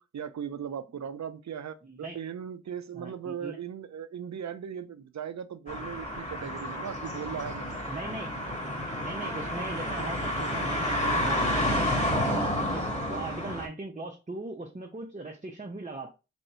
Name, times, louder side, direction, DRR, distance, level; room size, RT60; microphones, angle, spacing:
voice 1, 0.0-7.8 9.2-9.3, right 8 dB, 65° right, 0.5 m, -38 dB
voice 2, 1.8-2.2 2.9-3.6 7.9-8.3 9.0-16.1, right 2 dB, 25° right, 0.8 m, -39 dB
sound 1, 5.7-13.7, left 1 dB, 25° left, 1.6 m, -30 dB
3.5 x 2.6 x 4.3 m
cardioid pair, 45°, 30 cm